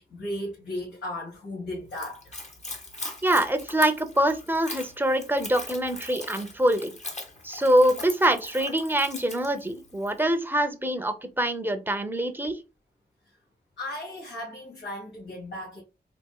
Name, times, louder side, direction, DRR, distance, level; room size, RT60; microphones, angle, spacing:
voice 1, 0.0-2.3 13.8-15.8, left 1 dB, 80° left, 1.9 m, -36 dB
Splash splatter / Trickle dribble, 1.9-10.2, left 2 dB, 40° left, 1.3 m, -40 dB
voice 2, 3.2-7.0 7.4-12.6, right 1 dB, 10° right, 0.7 m, -24 dB
4.3 x 3.1 x 2.3 m
cardioid pair, 55°, 18 cm